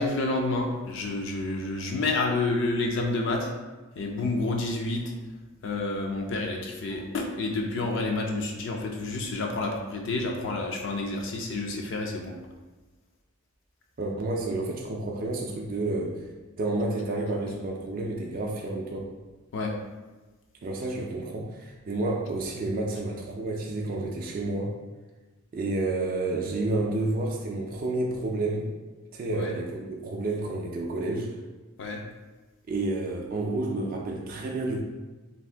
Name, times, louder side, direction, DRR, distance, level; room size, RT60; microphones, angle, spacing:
voice 1, 0.0-3.5 4.0-5.0 5.6-12.3 19.5-19.7 29.3-29.5 31.8-32.0, left 2 dB, 55° left, 1 dB, 0.4 m, -29 dB
voice 2, 14.0-16.2 16.6-19.1 20.6-24.8 25.5-28.7 29.1-31.4 32.7-34.8, right 2 dB, 40° right, -1 dB, 0.3 m, -30 dB
2.7 x 2.4 x 3.3 m, 1.2 s
head